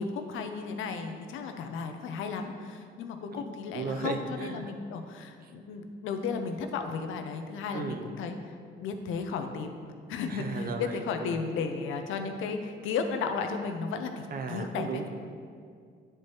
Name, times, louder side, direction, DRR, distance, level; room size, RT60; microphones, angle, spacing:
voice 1, 0.0-8.4 8.8-9.7 10.1-15.0, left 5 dB, 85° left, 6 dB, 0.6 m, -34 dB
voice 2, 3.7-4.7 7.7-8.1 10.3-11.5 14.3-15.1, right 4 dB, 50° right, 5 dB, 0.7 m, -35 dB
9.9 x 4.4 x 3.1 m, 2.2 s
cardioid pair, 90°, 20 cm